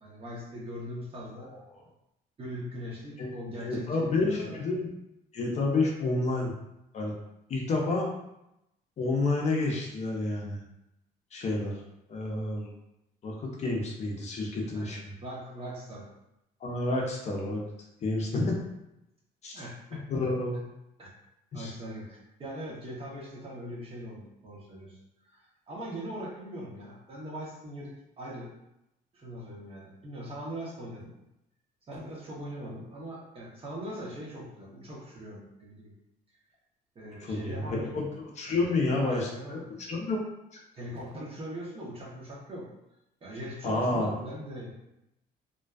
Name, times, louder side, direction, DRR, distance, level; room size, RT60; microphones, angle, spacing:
voice 1, 0.0-1.6 2.4-4.6 14.7-16.1 19.5-20.1 21.0-21.1 21.5-25.0 25.3-28.5 29.1-31.2 31.9-35.9 36.9-38.0 38.5-38.7 39.0-39.7 40.8-42.7 43.2-44.7, equal, 35° right, -4 dB, 0.8 m, -41 dB
voice 2, 3.6-4.9 5.3-6.6 6.9-7.2 7.5-8.1 9.0-10.6 11.3-11.7 12.1-12.7 13.2-15.1 16.6-17.6 18.0-18.6 19.4-19.6 20.1-20.6 21.5-21.7 37.2-38.0 38.4-40.2 40.5-40.6 43.6-44.2, left 2 dB, 40° left, -2 dB, 0.6 m, -29 dB
2.5 x 2.2 x 2.3 m, 0.86 s
cardioid pair, 110°, 17 cm